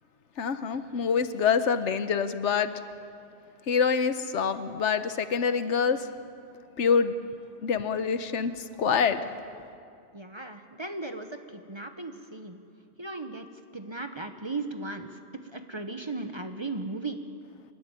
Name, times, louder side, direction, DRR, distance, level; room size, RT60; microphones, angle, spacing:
voice 1, 0.4-2.7 3.7-6.1 6.8-7.1 7.6-9.2, left 6 dB, 80° left, 11 dB, 1.2 m, -26 dB
voice 2, 10.1-12.6 13.0-13.5 13.7-17.2, right 3 dB, 25° right, 7 dB, 1.0 m, -37 dB
25.5 x 12.0 x 9.8 m, 2.4 s
omnidirectional pair, 1.2 m